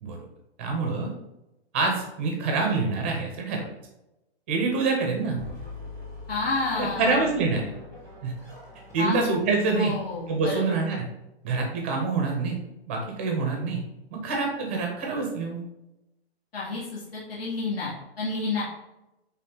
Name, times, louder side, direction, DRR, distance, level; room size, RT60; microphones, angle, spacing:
voice 1, 0.6-1.1 1.7-3.7 4.5-5.4 6.8-7.7 8.2-8.3 8.9-9.9 10.3-11.0 11.4-12.6 12.9-13.8 14.1-15.6, right 4 dB, 10° right, 1 dB, 0.5 m, -26 dB
sound 1, 5.4-10.8, left 2 dB, 5° left, 0.9 m, -44 dB
voice 2, 6.3-7.4 9.0-9.2 9.8-10.8 16.5-18.6, left 3 dB, 65° left, -6 dB, 2.2 m, -30 dB
8.8 x 3.6 x 3.7 m, 0.94 s
hypercardioid pair, 175°, 32 cm